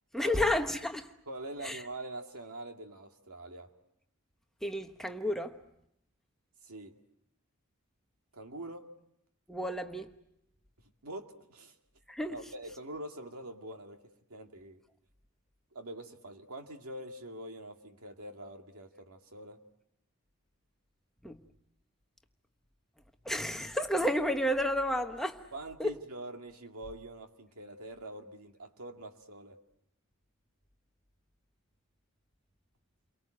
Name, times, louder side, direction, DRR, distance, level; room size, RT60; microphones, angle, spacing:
voice 1, 0.1-1.0 1.6-1.8 4.6-5.6 9.5-10.1 12.1-12.4 21.2-21.4 23.2-25.4 25.8-25.9, equal, ahead, 1.1 m, -31 dB
voice 2, 1.3-3.7 6.6-7.0 8.3-8.9 11.0-11.7 12.3-14.0 14.3-14.8 15.7-19.6 25.5-29.6, right 1 dB, 85° right, 2.3 m, -44 dB
29.5 x 23.5 x 7.7 m
head